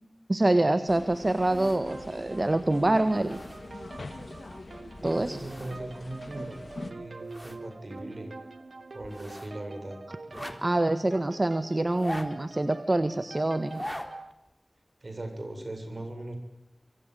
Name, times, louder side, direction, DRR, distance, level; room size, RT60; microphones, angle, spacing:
voice 1, 0.3-3.4 5.0-5.4 10.6-13.8, right 2 dB, 45° right, 11 dB, 1.6 m, -25 dB
sound 1, 0.9-6.9, left 2 dB, 75° left, 2.2 m, -44 dB
sound 2, 1.3-2.1 2.5-2.6 2.9-3.9 4.9-5.8 6.1-6.2 6.7-7.6 8.0-8.1 9.0-9.6 10.2-10.9 11.8-12.7 13.6-14.1 14.5-14.6, equal, 10° left, 4.0 m, -42 dB
sound 3, 1.5-14.3, right 3 dB, 85° right, 1.8 m, -45 dB
voice 2, 5.0-8.3 8.9-10.0 15.0-16.4, right 1 dB, 60° right, 6 dB, 7.6 m, -39 dB
25.0 x 25.0 x 8.2 m, 0.88 s
wide cardioid pair, 50°, 0 cm